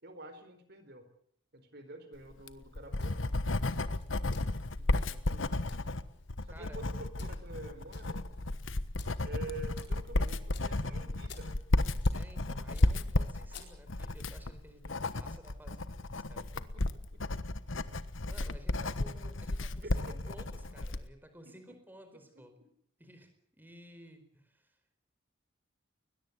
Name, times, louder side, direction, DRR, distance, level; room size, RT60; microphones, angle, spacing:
voice 1, 0.0-1.1 1.5-3.2 4.8-5.5 6.4-8.3 9.2-11.6 16.4-17.6 19.8-20.2 21.4-21.5 22.1-22.2 22.6-22.7, right 2 dB, 55° right, 10 dB, 4.5 m, -48 dB
Writing, 2.3-21.1, left 2 dB, 75° left, 1.3 m, -33 dB
sound 1, 2.9-14.1, left 5 dB, 60° left, 4.4 m, -57 dB
voice 2, 6.5-6.8 12.1-16.6 18.2-22.5 23.0-24.8, equal, 10° right, 8 dB, 4.5 m, -55 dB
21.0 x 21.0 x 8.2 m, 0.65 s
head